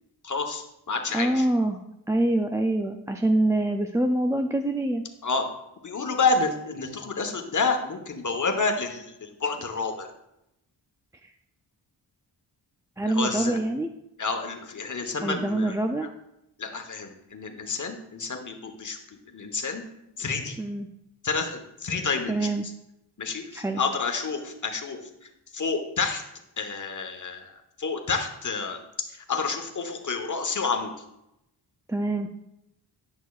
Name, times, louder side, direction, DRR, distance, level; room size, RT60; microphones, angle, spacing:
voice 1, 0.2-1.5 5.2-5.4 5.8-10.1 13.0-13.6 14.2-15.7 16.6-19.0 19.3-19.8 20.2-20.6 21.2-22.5 23.2-25.1 25.5-26.2 26.6-28.8 29.1-30.9, left 4 dB, 40° left, 4 dB, 1.1 m, -29 dB
voice 2, 1.1-1.8 2.1-5.0 11.2-11.3 13.0-13.9 15.2-16.1 20.6-20.9 22.3-22.6 23.5-23.8 31.9-32.3, right 1 dB, 10° right, 4 dB, 0.3 m, -25 dB
10.5 x 5.9 x 2.4 m, 0.85 s
cardioid pair, 65°, 45 cm